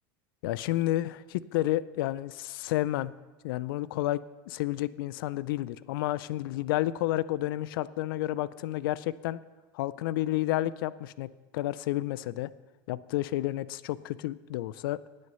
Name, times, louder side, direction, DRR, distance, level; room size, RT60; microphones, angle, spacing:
voice 1, 0.4-3.1 3.4-9.4 9.7-12.5 12.9-15.0, left 15 dB, 75° left, 18 dB, 0.4 m, -31 dB
18.0 x 6.5 x 5.5 m, 1.2 s
supercardioid pair, 105°, 12 cm